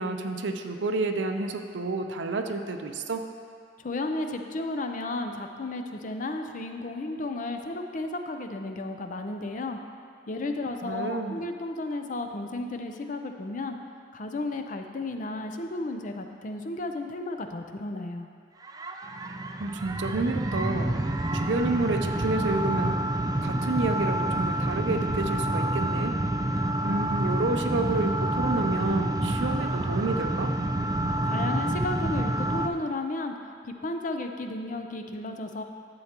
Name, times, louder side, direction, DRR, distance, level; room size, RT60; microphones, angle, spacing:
voice 1, 0.0-3.3 10.8-11.4 19.6-20.9 21.3-23.0 23.4-26.2 26.8-30.5, right 2 dB, 85° right, 5 dB, 0.6 m, -29 dB
voice 2, 3.8-9.8 10.3-13.8 14.1-18.3 31.2-33.3 33.8-35.6, left 2 dB, 45° left, 5 dB, 0.5 m, -33 dB
sound 1, 18.6-32.7, right 1 dB, 20° right, 0.4 m, -28 dB
11.5 x 7.9 x 2.9 m, 2.2 s
head